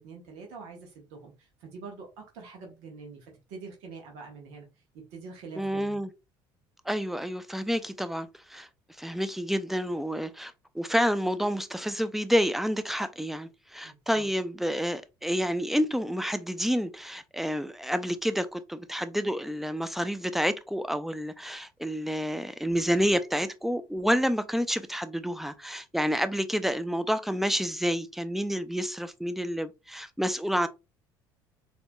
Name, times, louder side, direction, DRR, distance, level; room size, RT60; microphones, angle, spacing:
voice 1, 0.0-4.7 4.9-6.0 13.8-14.3, right 4 dB, 75° right, 1.1 m, -45 dB
voice 2, 5.6-6.1 6.9-8.7 9.0-30.7, equal, ahead, 0.4 m, -29 dB
4.2 x 2.7 x 2.2 m
hypercardioid pair, 75°, 11 cm